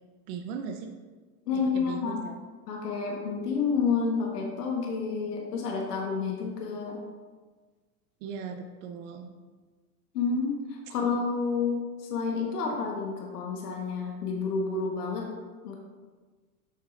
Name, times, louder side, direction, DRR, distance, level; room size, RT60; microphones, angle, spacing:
voice 1, 0.3-0.9 1.5-2.3 8.2-9.4, right 6 dB, 55° right, 5 dB, 0.8 m, -38 dB
voice 2, 1.5-2.2 2.7-7.0 10.1-15.3 15.6-15.8, left 5 dB, 85° left, 0 dB, 1.4 m, -29 dB
7.9 x 6.1 x 2.5 m, 1.4 s
hypercardioid pair, 110°, 46 cm